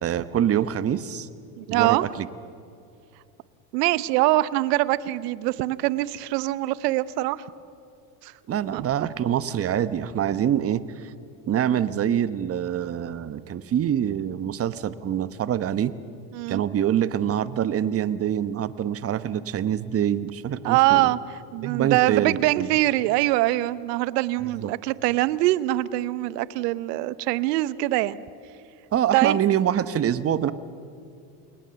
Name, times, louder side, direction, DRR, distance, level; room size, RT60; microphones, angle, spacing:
voice 1, 0.0-1.3 1.7-2.3 8.5-11.1 11.5-16.0 16.5-21.1 21.6-22.7 24.6-24.7 28.9-30.5, right 10 dB, 30° right, 14 dB, 1.0 m, -25 dB
voice 2, 1.6-2.0 3.7-7.4 8.2-8.3 8.7-8.8 16.3-16.6 20.6-21.2 21.5-28.2 29.1-29.4, right 17 dB, 80° right, 17 dB, 1.0 m, -23 dB
28.5 x 21.0 x 7.0 m, 2.5 s
supercardioid pair, 115°, 48 cm